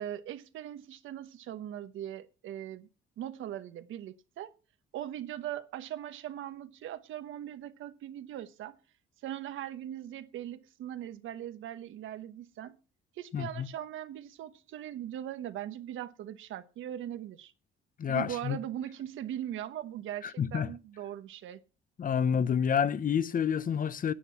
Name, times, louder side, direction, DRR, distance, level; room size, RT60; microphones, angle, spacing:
voice 1, 0.0-2.9 3.2-4.5 4.9-8.8 9.2-12.7 13.2-17.5 18.1-21.6, right 11 dB, 80° right, 1.1 m, -40 dB
voice 2, 13.3-13.7 18.0-18.6 20.2-20.7 22.0-24.1, left 7 dB, 45° left, 0.7 m, -29 dB
10.0 x 9.5 x 5.8 m
cardioid pair, 90°, 20 cm